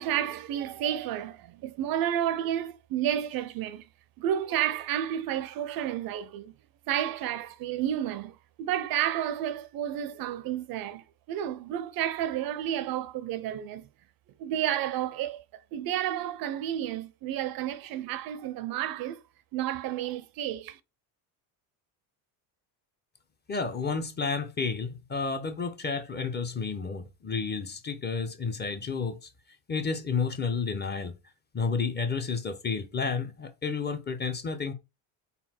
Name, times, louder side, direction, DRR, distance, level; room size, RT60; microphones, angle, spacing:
voice 1, 0.0-3.8 4.2-6.5 6.9-13.9 14.4-19.2 19.5-20.8, right 11 dB, 50° right, 0.5 m, -31 dB
voice 2, 23.5-29.3 29.7-31.1 31.5-34.7, left 5 dB, 20° left, 0.6 m, -31 dB
4.0 x 2.3 x 4.2 m
supercardioid pair, 105°, 46 cm